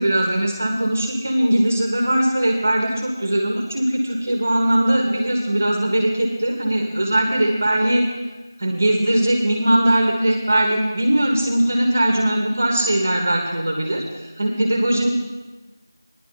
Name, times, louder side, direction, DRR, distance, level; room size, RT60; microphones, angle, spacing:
voice 1, 0.0-8.0 8.6-15.1, right 1 dB, 35° right, 1 dB, 1.3 m, -20 dB
17.5 x 10.5 x 2.8 m, 1.2 s
figure-of-eight pair, 170°, 2 cm